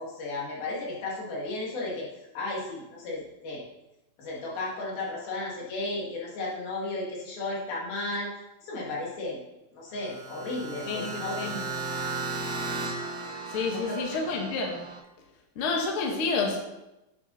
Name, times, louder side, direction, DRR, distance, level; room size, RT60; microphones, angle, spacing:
voice 1, 0.0-2.1 2.3-3.6 4.2-8.3 8.6-9.4 9.7-11.3 13.7-14.2, left 2 dB, 75° left, -4 dB, 4.2 m, -34 dB
sound 1, 9.9-15.0, right 3 dB, 60° right, 1.3 m, -35 dB
voice 2, 10.9-11.6 13.5-14.8 15.5-16.6, left 4 dB, 55° left, 1 dB, 1.6 m, -29 dB
9.4 x 8.8 x 4.2 m, 0.94 s
omnidirectional pair, 4.4 m